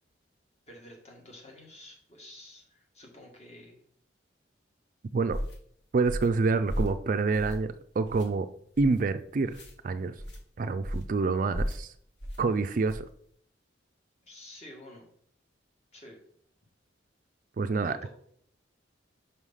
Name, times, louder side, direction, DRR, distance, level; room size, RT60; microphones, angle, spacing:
voice 1, 0.7-3.8 14.2-15.0 15.9-16.2 17.8-18.1, left 1 dB, 35° left, 0 dB, 2.0 m, -50 dB
sound 1, 5.3-5.6 6.0-6.4 6.7-7.0 7.3-7.7 8.0-8.3 8.7-9.0 9.5-9.7 10.2-10.4 10.8-11.1 11.5-11.8 12.2-12.4 12.9-13.1, equal, 60° left, 1.5 m, -34 dB
voice 2, 5.9-8.5 8.8-9.5 9.8-10.1 10.6-11.9 12.4-13.1 17.6-18.0, right 4 dB, 45° right, 11 dB, 0.4 m, -27 dB
5.7 x 4.9 x 5.5 m, 0.65 s
head